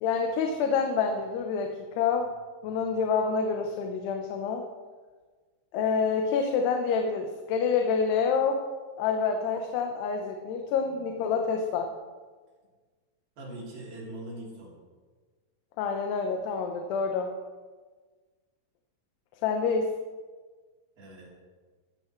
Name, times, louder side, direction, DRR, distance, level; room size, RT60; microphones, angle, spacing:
voice 1, 0.0-2.3 2.6-4.6 5.7-8.6 9.0-11.9 15.8-17.3 19.4-19.9, left 5 dB, 85° left, 4 dB, 3.0 m, -27 dB
voice 2, 13.4-14.7 21.0-21.3, right 1 dB, 65° right, -5 dB, 5.2 m, -41 dB
14.5 x 13.5 x 3.1 m, 1.4 s
omnidirectional pair, 4.6 m